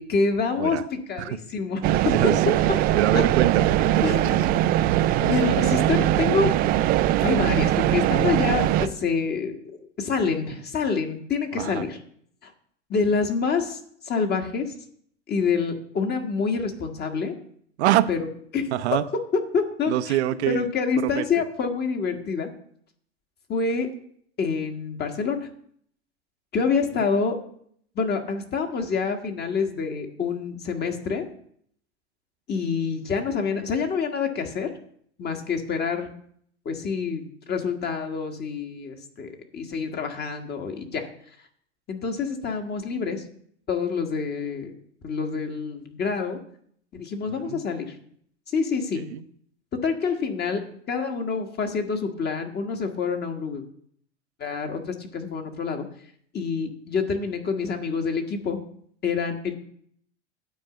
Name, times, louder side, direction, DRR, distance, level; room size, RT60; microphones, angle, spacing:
voice 1, 0.0-2.1 3.1-3.2 4.0-4.4 5.2-6.5 7.2-12.0 12.4-12.5 12.9-14.7 15.3-17.4 18.1-18.2 18.5-18.7 19.5-20.2 20.5-22.5 23.5-23.9 24.4-25.5 26.5-27.4 27.9-31.3 32.5-34.7 35.2-36.1 36.6-41.1 41.9-43.2 43.7-44.7 45.0-46.4 46.9-47.9 48.5-49.0 49.8-50.6 50.9-53.6 54.4-55.8 56.3-58.6 59.0-59.5, left 5 dB, 25° left, 4 dB, 1.6 m, -27 dB
sound 1, 1.8-8.9, right 13 dB, 25° right, 0.3 m, -21 dB
voice 2, 2.1-2.6 3.0-4.6 11.5-11.8 17.8-18.1 18.7-19.0 19.9-20.7 21.0-21.3 47.3-47.6 49.0-49.2, right 13 dB, 65° right, 12 dB, 0.8 m, -25 dB
9.4 x 4.6 x 7.6 m, 0.64 s
hypercardioid pair, 100°, 36 cm